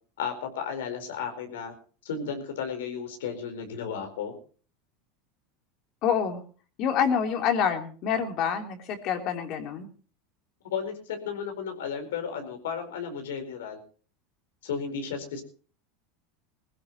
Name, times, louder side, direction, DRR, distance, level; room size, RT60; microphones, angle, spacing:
voice 1, 0.2-1.7 2.0-4.3 10.6-13.8 14.6-15.4, left 6 dB, 85° left, 5 dB, 4.5 m, -34 dB
voice 2, 6.0-6.4 6.8-9.9, left 7 dB, 50° left, 4 dB, 3.6 m, -27 dB
20.5 x 16.0 x 3.1 m, 0.40 s
hypercardioid pair, 105°, 0 cm